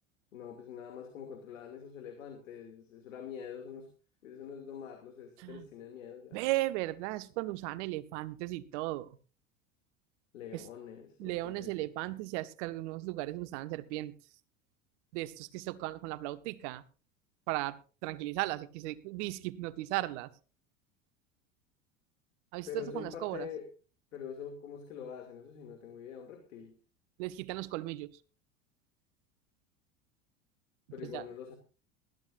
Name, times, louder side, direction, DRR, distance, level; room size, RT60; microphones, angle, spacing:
voice 1, 0.3-3.9 4.2-6.4 10.3-11.9 22.7-23.7 24.1-26.7 30.9-31.5, left 8 dB, 80° left, 4 dB, 2.6 m, -45 dB
voice 2, 6.3-9.2 10.5-10.7 11.2-14.1 15.1-16.8 17.5-20.3 22.5-23.5 27.2-28.1 31.1-31.2, right 18 dB, 60° right, 14 dB, 1.2 m, -36 dB
20.0 x 13.5 x 2.6 m, 0.35 s
hypercardioid pair, 85°, 39 cm